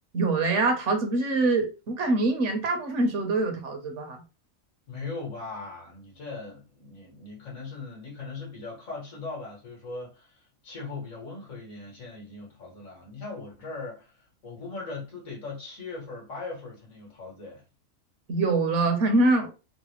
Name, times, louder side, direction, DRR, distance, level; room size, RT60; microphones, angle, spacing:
voice 1, 0.1-4.2 18.3-19.5, right 2 dB, 65° right, 1.0 m, -24 dB
voice 2, 4.9-17.6, left 3 dB, 70° left, 2.0 m, -39 dB
4.0 x 2.1 x 3.0 m
omnidirectional pair, 1.4 m